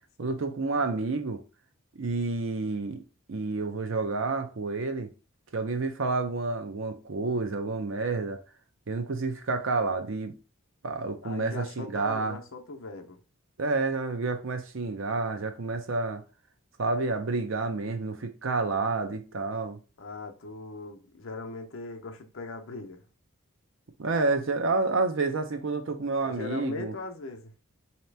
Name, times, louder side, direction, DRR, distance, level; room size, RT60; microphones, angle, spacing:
voice 1, 0.2-1.4 2.0-3.0 3.3-5.1 5.5-8.4 8.9-10.4 10.8-12.4 13.6-16.2 16.8-19.8 24.0-26.9, right 3 dB, 65° right, 0.6 m, -29 dB
voice 2, 11.2-13.2 20.0-23.0 26.2-27.5, left 3 dB, 70° left, 0.7 m, -39 dB
4.0 x 2.9 x 3.3 m
head